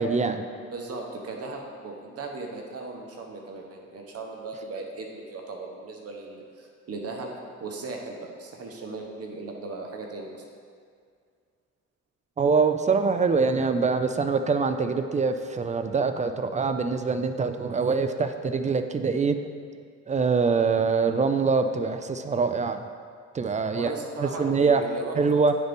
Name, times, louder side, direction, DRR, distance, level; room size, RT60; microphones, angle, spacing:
voice 1, 0.0-0.4 12.4-19.4 20.1-22.8 23.3-23.9 24.2-24.8 25.2-25.5, right 4 dB, 25° right, 8 dB, 0.4 m, -24 dB
voice 2, 0.6-7.3 7.6-10.4 17.8-18.0 23.7-25.4, right 3 dB, 50° right, 1 dB, 1.1 m, -37 dB
9.5 x 3.9 x 3.5 m, 2.1 s
cardioid pair, 90°, 30 cm